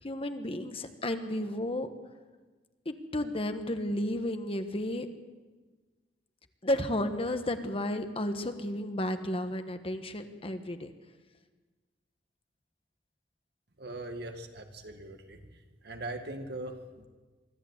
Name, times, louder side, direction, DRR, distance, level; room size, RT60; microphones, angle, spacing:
voice 1, 0.0-1.9 2.8-5.1 6.6-10.9, left 1 dB, 35° left, 8 dB, 1.4 m, -32 dB
voice 2, 13.8-15.4 15.8-17.1, right 2 dB, 65° right, 5 dB, 2.1 m, -40 dB
24.0 x 14.0 x 8.2 m, 1.3 s
head